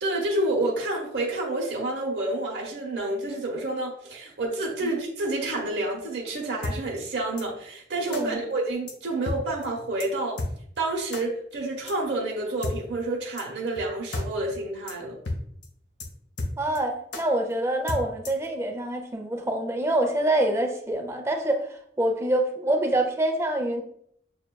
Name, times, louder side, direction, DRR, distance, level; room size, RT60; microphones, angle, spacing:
voice 1, 0.0-10.4 10.8-15.2, right 2 dB, 75° right, 0.9 m, -29 dB
sound 1, 6.6-6.8 7.4-7.5 8.1-8.2 8.9-9.0 9.2-9.4 9.6-9.7 10.0-10.1 10.4-10.5 11.1-11.2 11.9-12.0 12.6-12.8 13.4-13.5 13.8-13.9 14.1-14.3 14.5-14.6 14.9-15.0 15.2-15.4 15.6-15.7 16.0-16.1 16.4-16.8 17.1-17.2 17.9-18.5, left 2 dB, 90° left, 0.7 m, -31 dB
voice 2, 8.1-8.4 16.6-23.8, right 1 dB, 15° right, 0.4 m, -26 dB
6.5 x 2.2 x 2.2 m
head